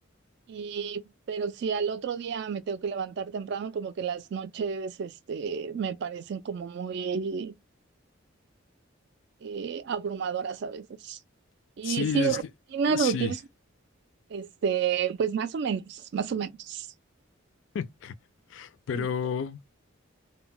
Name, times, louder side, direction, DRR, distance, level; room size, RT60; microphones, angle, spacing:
voice 1, 0.5-7.5 9.4-11.2 11.8-12.4 12.7-13.4 14.3-16.9 18.9-19.1, right 6 dB, 55° right, 0.3 m, -30 dB
voice 2, 11.8-12.4 12.9-13.3 17.7-18.1 18.5-19.6, left 7 dB, 65° left, 0.3 m, -31 dB
2.1 x 2.1 x 3.8 m
head